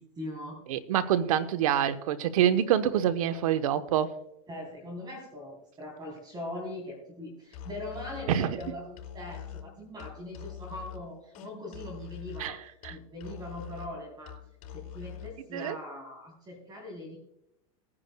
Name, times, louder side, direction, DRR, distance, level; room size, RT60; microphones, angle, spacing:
voice 1, 0.0-0.6 4.5-14.4 14.7-17.2, left 1 dB, 25° right, 3.6 m, -41 dB
voice 2, 0.7-4.1 8.3-8.6 12.4-12.6 12.8-12.9 15.5-15.8, right 10 dB, 75° right, 1.0 m, -26 dB
Musical instrument, 7.5-15.4, left 9 dB, 45° left, 4.9 m, -44 dB
20.5 x 9.8 x 2.3 m
hypercardioid pair, 115°, 18 cm